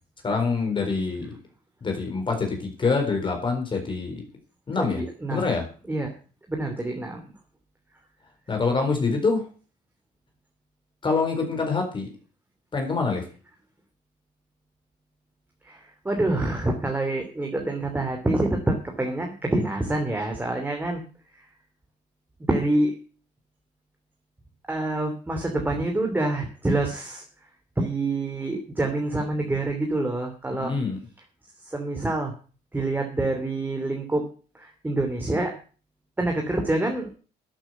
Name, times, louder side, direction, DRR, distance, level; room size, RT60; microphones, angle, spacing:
voice 1, 0.2-1.4 1.8-4.2 4.7-5.0 5.3-5.6 8.5-9.5 11.0-12.1 12.7-13.3 30.5-31.0, left 4 dB, 30° left, 3 dB, 4.2 m, -25 dB
voice 2, 4.8-5.5 5.9-6.1 6.5-7.2 15.6-21.0 21.4-21.5 22.5-22.9 24.7-27.2 27.8-30.7 31.6-32.3 32.7-34.2 34.5-35.5 36.2-37.1, right 2 dB, 10° right, 2 dB, 2.8 m, -26 dB
12.0 x 8.7 x 8.0 m, 0.38 s
cardioid pair, 110°, 17 cm